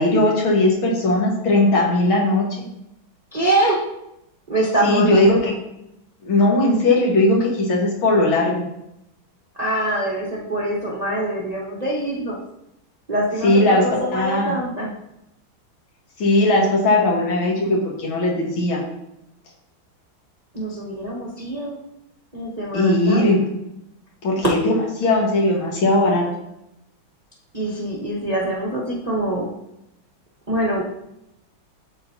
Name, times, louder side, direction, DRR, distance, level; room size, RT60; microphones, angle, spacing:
voice 1, 0.0-2.5 4.8-5.5 6.2-8.6 13.4-13.8 14.1-14.6 16.2-18.8 22.7-23.4 24.2-26.2, left 2 dB, 80° left, -2 dB, 2.3 m, -18 dB
voice 2, 3.3-3.8 4.5-5.4 9.6-12.4 13.1-14.9 20.5-21.8 22.3-23.3 27.5-29.5 30.5-30.8, right 1 dB, 30° right, -5 dB, 0.7 m, -24 dB
11.5 x 4.2 x 2.7 m, 0.83 s
omnidirectional pair, 2.2 m